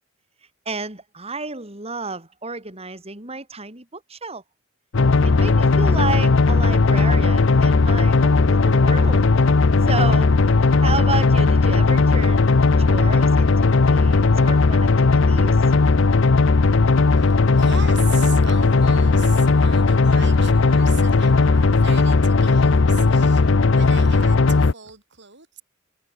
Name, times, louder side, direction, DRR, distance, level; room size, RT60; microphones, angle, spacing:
voice 1, 0.7-4.4 5.2-9.2 9.9-10.3 10.8-12.5 12.8-15.6, right 3 dB, 30° right, 7.1 m, -31 dB
sound 1, 4.9-24.7, left 3 dB, 65° left, 0.7 m, -16 dB
voice 2, 17.2-25.6, right 6 dB, 60° right, 6.6 m, -39 dB
head